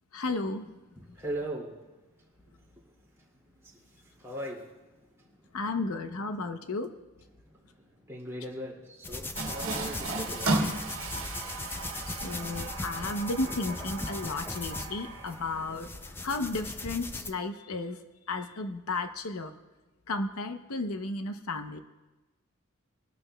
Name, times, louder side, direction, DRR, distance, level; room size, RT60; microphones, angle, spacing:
voice 1, 0.1-0.8 5.5-6.9 12.0-18.0 18.3-19.5 20.1-21.8, left 3 dB, 80° left, 8 dB, 0.7 m, -33 dB
voice 2, 1.1-1.8 3.6-3.8 4.2-4.7 5.2-5.3 8.1-10.6 11.1-11.2, right 1 dB, 10° right, -4 dB, 2.4 m, -38 dB
sound 1, 9.0-17.3, left 2 dB, 10° left, 0.4 m, -39 dB
Water tap faucet, 9.4-15.7, right 2 dB, 65° right, 1.7 m, -35 dB
22.0 x 12.0 x 2.2 m, 1.1 s
head